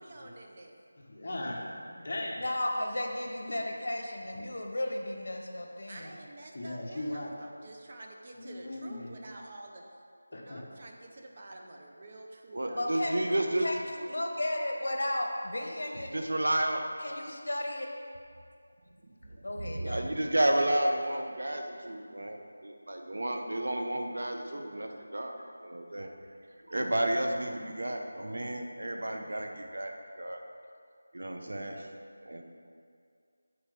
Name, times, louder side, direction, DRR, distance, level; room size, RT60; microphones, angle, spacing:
voice 1, 0.0-0.8 5.9-9.8 10.3-12.8, right 2 dB, 30° right, 1 dB, 0.6 m, -49 dB
voice 2, 1.0-2.4 6.5-7.3 8.3-9.1 10.3-10.6, left 1 dB, 40° left, -3 dB, 1.1 m, -38 dB
voice 3, 2.4-6.1 12.7-16.1 17.0-17.9 19.4-20.1, left 1 dB, 65° left, 2 dB, 1.1 m, -34 dB
voice 4, 12.5-13.7 16.1-16.8 19.1-26.1 26.7-30.4 31.1-31.9 32.3-32.4, right 1 dB, 70° right, 3 dB, 0.8 m, -32 dB
8.1 x 4.2 x 5.0 m, 2.3 s
figure-of-eight pair, 175°, 0 cm